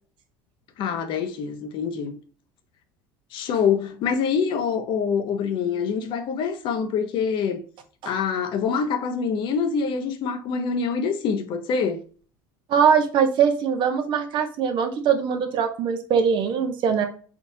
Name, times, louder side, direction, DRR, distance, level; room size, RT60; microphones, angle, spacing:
voice 1, 0.8-2.2 3.3-7.6 8.1-12.0, left 6 dB, 55° left, 0.8 m, -25 dB
voice 2, 12.7-17.1, right 7 dB, 55° right, 1.0 m, -22 dB
3.9 x 3.7 x 2.8 m
supercardioid pair, 85°, 10 cm